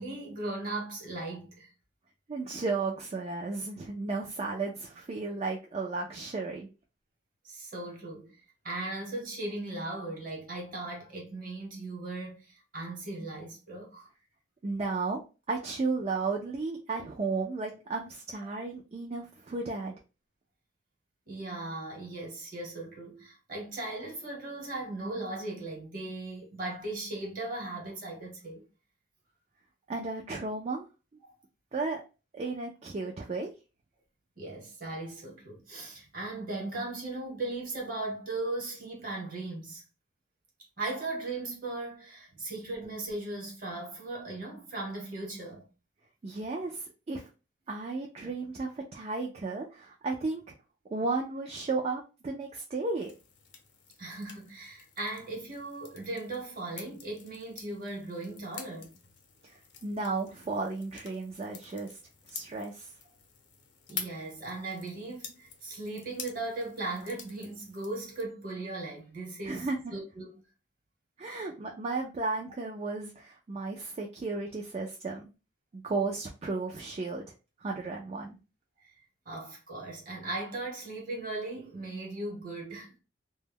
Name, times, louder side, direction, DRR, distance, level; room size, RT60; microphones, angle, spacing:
voice 1, 0.0-1.7 7.4-8.4 8.6-14.1 21.3-28.6 34.4-39.8 40.8-45.7 54.0-59.0 63.9-70.3 71.3-71.5 79.2-82.9, right 2 dB, 50° right, 1.0 m, -38 dB
voice 2, 2.3-6.7 14.6-15.2 15.5-19.9 29.9-30.8 31.7-32.0 32.3-33.5 46.2-47.2 47.7-50.4 50.9-53.1 59.4-62.0 62.3-62.9 69.4-69.9 71.2-75.3 75.7-77.3 77.6-78.4, right 3 dB, 35° right, 0.3 m, -34 dB
sound 1, 53.0-68.2, left 6 dB, 70° left, 0.6 m, -48 dB
2.2 x 2.1 x 3.3 m
head